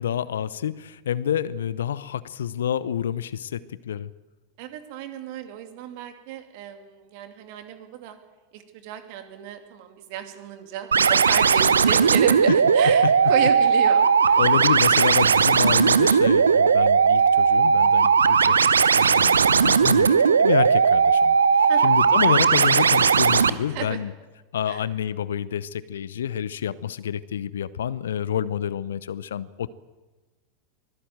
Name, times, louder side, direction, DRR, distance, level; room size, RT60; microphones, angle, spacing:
voice 1, 0.0-4.1 12.5-12.6 13.0-13.1 14.4-20.1 20.4-24.1 24.5-29.7, left 9 dB, 70° left, 19 dB, 0.8 m, -28 dB
voice 2, 4.6-8.2 8.5-14.4 19.9-20.2 21.7-22.0 23.7-24.0 24.7-24.8, right 10 dB, 55° right, 7 dB, 2.7 m, -32 dB
sound 1, 10.9-23.5, right 6 dB, 75° right, 0.8 m, -18 dB
24.0 x 16.0 x 7.8 m, 1.2 s
figure-of-eight pair, 85°, 0 cm